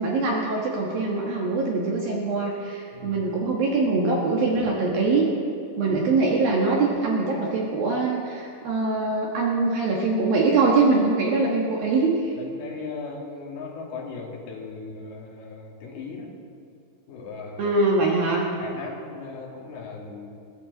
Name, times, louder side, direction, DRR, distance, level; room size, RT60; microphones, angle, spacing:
voice 1, 0.0-5.2 5.8-12.3 17.6-18.5, right 3 dB, 65° right, -2 dB, 2.5 m, -23 dB
voice 2, 12.4-16.3 17.1-17.8 18.6-20.4, left 4 dB, 55° left, -2 dB, 3.8 m, -37 dB
21.0 x 15.0 x 4.1 m, 2.6 s
omnidirectional pair, 5.9 m